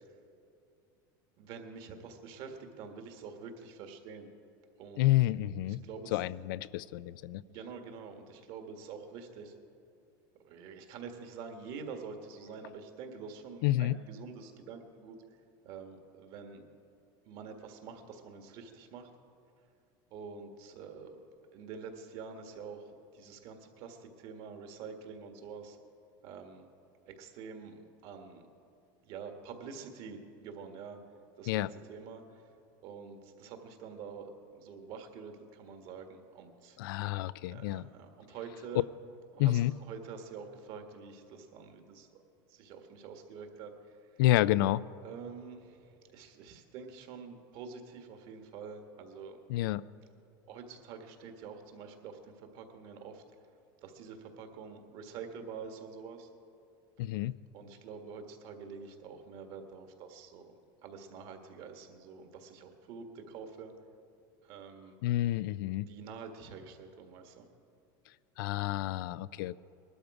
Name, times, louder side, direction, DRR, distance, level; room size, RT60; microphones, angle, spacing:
voice 1, 1.4-4.3 4.8-5.1 5.8-6.2 7.4-9.5 10.4-15.2 15.6-16.7 17.2-19.1 20.1-21.2 21.5-25.8 26.2-26.7 27.0-28.4 29.0-31.0 31.4-32.4 32.8-36.8 37.5-38.9 39.3-42.2 42.5-44.0 45.0-49.4 50.4-53.2 53.8-56.3 57.5-60.4 60.8-63.7 64.4-65.0 65.8-67.4, right 5 dB, 50° right, 5 dB, 1.7 m, -47 dB
voice 2, 5.0-5.8 6.1-7.4 13.6-14.0 31.5-31.7 36.8-37.9 39.4-39.7 44.2-44.8 49.5-49.9 57.0-57.4 65.0-65.9 68.4-69.6, left 15 dB, 75° left, 17 dB, 0.4 m, -29 dB
20.0 x 12.5 x 4.9 m, 2.6 s
supercardioid pair, 155°, 11 cm